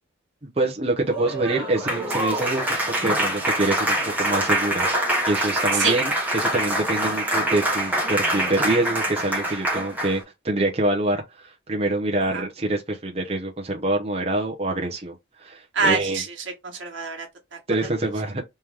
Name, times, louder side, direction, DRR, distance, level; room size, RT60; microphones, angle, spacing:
voice 1, 0.4-4.9 5.3-16.2 17.7-18.4, right 2 dB, 30° right, 0.8 m, -25 dB
Applause, 1.0-10.2, right 1 dB, 10° right, 1.2 m, -25 dB
voice 2, 15.7-17.3 17.5-17.6, right 4 dB, 85° right, 1.3 m, -25 dB
3.4 x 3.0 x 3.5 m
head